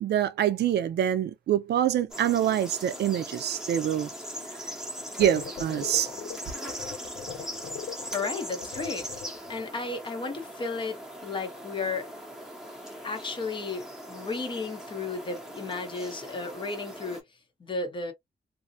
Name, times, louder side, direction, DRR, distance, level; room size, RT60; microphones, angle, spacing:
voice 1, 0.0-4.1 5.2-6.1, right 10 dB, 70° right, 0.4 m, -25 dB
sound 1, 2.1-17.2, equal, 5° right, 0.8 m, -40 dB
sound 2, 5.2-9.6, left 8 dB, 70° left, 0.5 m, -41 dB
voice 2, 8.1-9.1 9.5-12.1 13.0-17.2 17.6-18.1, left 3 dB, 30° left, 0.7 m, -33 dB
2.6 x 2.0 x 2.6 m
wide cardioid pair, 150°, 18 cm